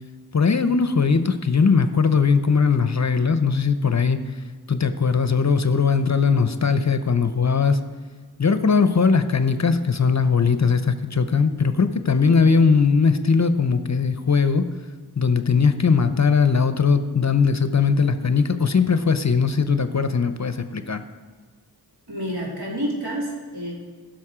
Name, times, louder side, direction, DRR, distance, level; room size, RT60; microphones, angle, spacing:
voice 1, 0.3-4.2 4.7-7.8 8.4-14.7 15.2-21.0, left 5 dB, 45° left, 10 dB, 0.6 m, -19 dB
voice 2, 22.1-23.7, equal, 75° right, -5 dB, 3.3 m, -29 dB
15.5 x 6.2 x 4.9 m, 1.5 s
wide cardioid pair, 55°, 39 cm